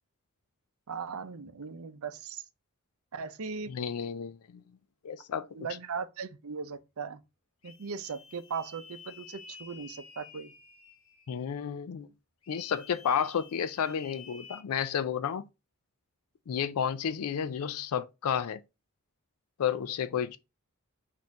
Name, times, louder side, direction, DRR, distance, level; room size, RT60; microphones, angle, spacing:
voice 1, 0.9-2.4 3.1-3.7 5.5-7.2 7.6-10.5, right 5 dB, 80° right, 0.6 m, -38 dB
voice 2, 3.7-4.6 5.0-5.5 11.3-12.1 12.5-15.5 16.5-18.6 19.6-20.4, left 8 dB, 90° left, 0.4 m, -31 dB
sound 1, 7.6-11.5 12.4-14.6, left 5 dB, 70° left, 1.0 m, -52 dB
4.3 x 2.7 x 4.6 m
head